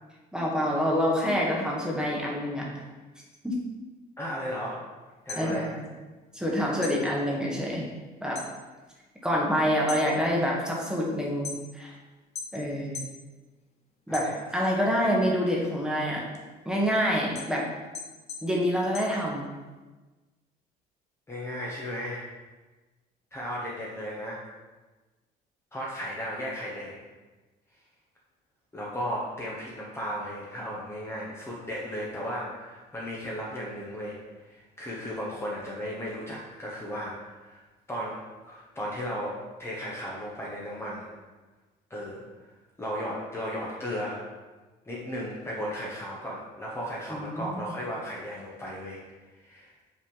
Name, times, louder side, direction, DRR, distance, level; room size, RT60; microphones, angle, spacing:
voice 1, 0.3-2.7 3.4-3.5 5.4-5.8 6.3-7.8 8.2-8.4 9.2-11.9 12.5-13.0 14.1-16.2 16.6-17.7 18.4-19.4 47.1-47.6, equal, 5° right, -3 dB, 1.4 m, -27 dB
voice 2, 4.2-4.8 5.2-5.7 14.1-14.4 21.3-22.3 23.3-24.4 25.7-27.0 28.7-34.2 34.4-37.6 37.9-38.2 38.4-39.3 39.6-41.1 41.9-42.5 42.8-44.2 44.8-49.0 49.4-49.7, equal, 15° left, -5 dB, 1.1 m, -35 dB
sound 1, 5.1-6.5 6.8-8.6 8.9-9.4 9.7-11.9 12.3-13.2 13.6-14.8 15.2-19.8, left 5 dB, 40° left, 0.9 m, -41 dB
5.5 x 3.3 x 5.4 m, 1.2 s
cardioid pair, 110°, 17 cm